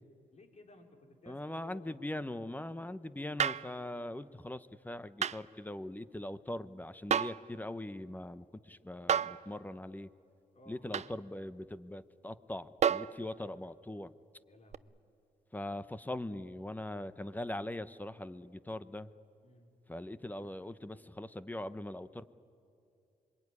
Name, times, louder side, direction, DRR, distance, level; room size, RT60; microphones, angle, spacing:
voice 1, 0.3-2.0 10.5-10.9 14.5-14.9 19.4-19.7, left 2 dB, 45° left, 3 dB, 4.0 m, -57 dB
voice 2, 1.3-10.1 10.7-14.1 15.5-19.1 19.9-22.3, left 1 dB, 10° left, 14 dB, 0.9 m, -41 dB
sound 1, 3.4-3.7 5.2-5.4 7.1-7.5 9.1-9.4 10.9-11.1 12.8-13.2 14.7-14.8, right 8 dB, 45° right, 0.5 m, -30 dB
26.0 x 22.0 x 9.8 m, 2.6 s
cardioid pair, 75°, 16 cm